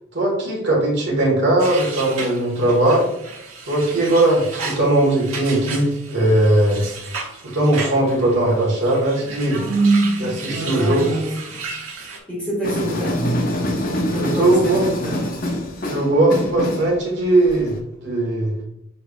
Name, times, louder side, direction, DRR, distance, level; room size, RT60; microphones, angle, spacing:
voice 1, 0.1-3.1 3.7-6.8 7.4-9.6 10.2-11.0 14.2-14.8 15.9-17.7 18.0-18.5, right 1 dB, 50° right, -4 dB, 1.5 m, -19 dB
sound 1, 1.6-12.2, right 4 dB, 75° right, 1.2 m, -34 dB
voice 2, 9.5-11.6 12.3-13.4 13.9-15.3, right 2 dB, 5° left, -7 dB, 1.8 m, -24 dB
sound 2, 12.6-17.8, left 1 dB, 40° left, 0.6 m, -25 dB
6.5 x 3.5 x 2.4 m, 0.79 s
head